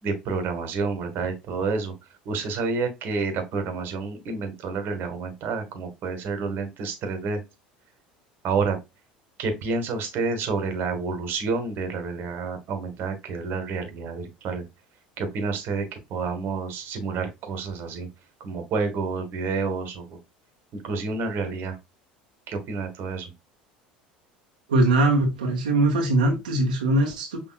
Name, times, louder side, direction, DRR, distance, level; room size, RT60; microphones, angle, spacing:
voice 1, 0.0-1.9 2.2-7.4 8.4-8.8 9.4-14.6 15.2-18.1 18.4-20.2 20.7-21.8 22.5-23.3, right 4 dB, 50° right, 1.5 m, -29 dB
voice 2, 24.7-27.4, right 2 dB, 80° right, 1.2 m, -21 dB
6.0 x 3.4 x 2.3 m
hypercardioid pair, 70°, 5 cm